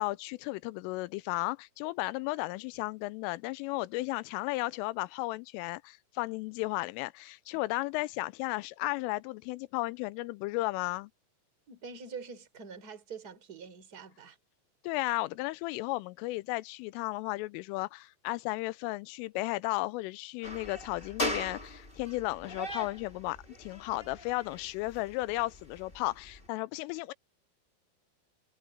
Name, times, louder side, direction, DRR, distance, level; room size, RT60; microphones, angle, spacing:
voice 1, 0.0-11.1 14.8-27.1, left 21 dB, 90° left, 3.2 m, -34 dB
voice 2, 11.7-14.4, right 5 dB, 20° right, 4.0 m, -45 dB
sound 1, 20.4-26.5, left 1 dB, 10° left, 3.7 m, -40 dB
omnidirectional pair, 5.7 m